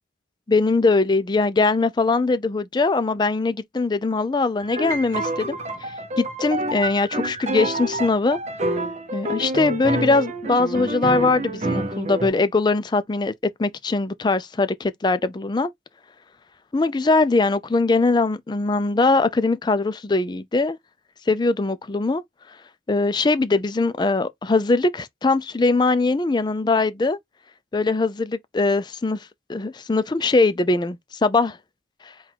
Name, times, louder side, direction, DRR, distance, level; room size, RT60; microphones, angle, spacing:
voice 1, 0.5-5.6 6.2-8.4 9.1-13.3 13.6-15.7 16.7-20.8 21.3-22.2 22.9-27.2 27.7-29.2 29.5-31.6, left 3 dB, 25° left, 0.4 m, -21 dB
sound 1, 4.6-12.3, right 2 dB, 40° right, 0.7 m, -28 dB
3.8 x 2.3 x 4.4 m
head